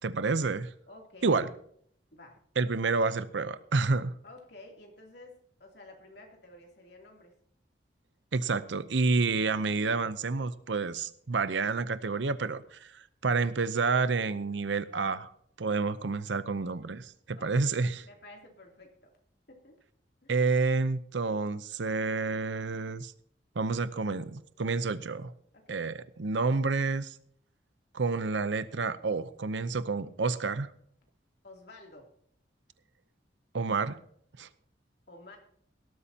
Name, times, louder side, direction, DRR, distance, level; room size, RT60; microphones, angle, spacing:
voice 1, 0.0-0.7 1.2-1.5 2.6-4.1 8.3-15.3 15.6-18.1 20.3-23.1 23.6-25.3 25.7-27.2 27.9-30.7 33.5-34.0 34.4-34.5, right 4 dB, 90° right, 14 dB, 0.7 m, -29 dB
voice 2, 0.9-1.5 2.1-2.4 2.6-2.8 4.2-7.3 15.6-15.7 17.3-17.5 18.0-19.1 19.5-19.8 20.2-20.4 25.5-25.8 31.4-32.1 35.1-35.4, left 2 dB, 65° left, 0 dB, 3.0 m, -51 dB
18.0 x 12.5 x 2.8 m, 0.63 s
head